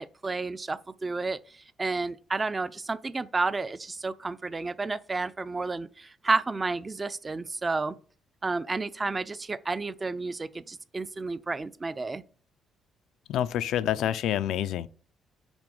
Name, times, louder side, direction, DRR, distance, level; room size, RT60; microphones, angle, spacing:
voice 1, 0.0-8.0 8.4-12.2, right 3 dB, 25° right, 0.4 m, -31 dB
voice 2, 13.3-14.9, left 11 dB, 80° left, 0.3 m, -27 dB
6.0 x 4.2 x 3.8 m
cardioid pair, 90°, 0 cm